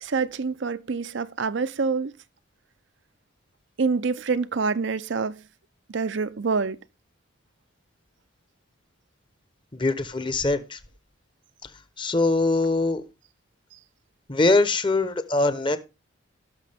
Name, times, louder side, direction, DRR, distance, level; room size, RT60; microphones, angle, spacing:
voice 1, 0.0-2.1 3.8-5.4 5.9-6.8, right 4 dB, 65° right, 0.5 m, -26 dB
voice 2, 9.7-10.8 12.0-13.0 14.3-15.8, left 2 dB, 25° left, 0.9 m, -22 dB
17.0 x 6.3 x 3.5 m
head